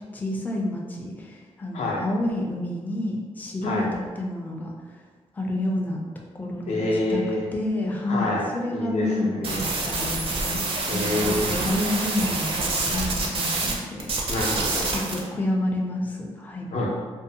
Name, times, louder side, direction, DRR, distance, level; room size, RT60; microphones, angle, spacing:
voice 1, 0.1-5.0 5.3-6.0 6.3-6.8 7.1-7.2 7.5-14.1 14.9-16.7, left 1 dB, 15° left, -1 dB, 0.4 m, -29 dB
voice 2, 6.7-7.4 8.1-9.6 10.3-10.4 10.9-11.5 14.3-14.9 16.7-16.9, left 2 dB, 75° left, -3 dB, 0.6 m, -27 dB
sound 1, 9.4-13.7 14.0-15.2, right 3 dB, 50° right, 0.4 m, -27 dB
2.6 x 2.1 x 2.7 m, 1.5 s
wide cardioid pair, 120°, 12 cm